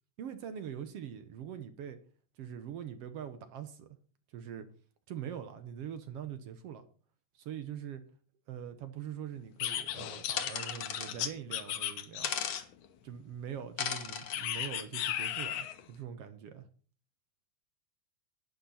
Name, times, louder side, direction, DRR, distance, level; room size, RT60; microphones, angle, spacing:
voice 1, 0.2-2.0 2.4-4.0 4.3-4.7 5.1-6.8 7.3-8.0 8.5-12.3 13.0-16.7, right 9 dB, 65° right, 1.7 m, -43 dB
sound 1, 9.6-12.9 14.3-15.8, left 11 dB, 80° left, 2.4 m, -36 dB
sound 2, 10.4-11.1 12.2-12.6 13.8-14.4, left 8 dB, 60° left, 2.2 m, -35 dB
11.5 x 9.8 x 4.3 m
omnidirectional pair, 3.5 m